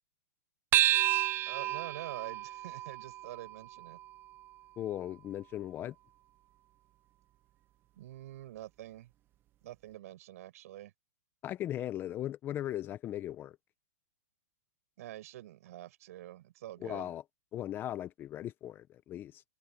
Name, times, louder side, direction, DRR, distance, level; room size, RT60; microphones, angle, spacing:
sound 1, 0.7-5.5, right 14 dB, 20° right, 0.6 m, -32 dB
voice 1, 1.5-4.0 7.9-9.1 9.6-10.9 15.0-17.1, right 14 dB, 55° right, 7.7 m, -46 dB
voice 2, 4.8-5.9 11.4-13.6 16.8-17.2 17.5-19.4, left 12 dB, 20° left, 1.1 m, -38 dB
open air
hypercardioid pair, 140°, 9 cm